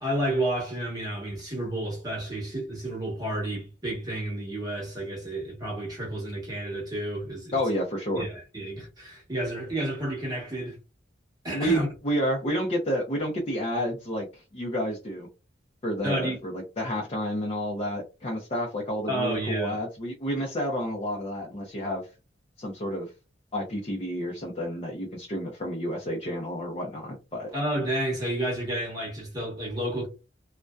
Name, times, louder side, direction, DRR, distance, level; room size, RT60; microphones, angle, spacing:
voice 1, 0.0-7.6 8.1-10.8 11.4-11.9 16.0-16.4 19.1-19.8 27.5-30.1, right 1 dB, 20° right, 1.0 m, -31 dB
voice 2, 7.5-8.2 11.5-15.3 15.8-22.1 22.6-23.1 23.5-27.5, equal, 35° left, 0.5 m, -30 dB
2.6 x 2.1 x 2.2 m
head